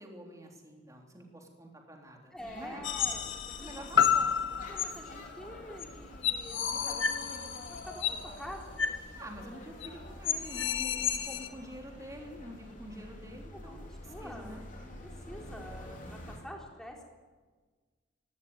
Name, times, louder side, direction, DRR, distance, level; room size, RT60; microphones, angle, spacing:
voice 1, 0.0-2.8 3.6-4.4 9.2-14.6, equal, 15° right, 1 dB, 3.5 m, -47 dB
voice 2, 2.3-3.7 4.7-8.8 13.5-17.0, equal, 5° left, 0 dB, 3.9 m, -47 dB
sound 1, 2.4-16.4, left 1 dB, 45° left, 4.0 m, -48 dB
sound 2, 2.8-4.2 4.8-4.9 5.8-5.9 6.2-8.2 8.8-9.0 9.3-9.4 9.8-9.9 10.2-11.5, left 8 dB, 85° left, 1.6 m, -33 dB
sound 3, 3.9-8.0 8.5-8.6, left 7 dB, 60° left, 0.6 m, -31 dB
17.5 x 17.0 x 9.6 m, 1.4 s
head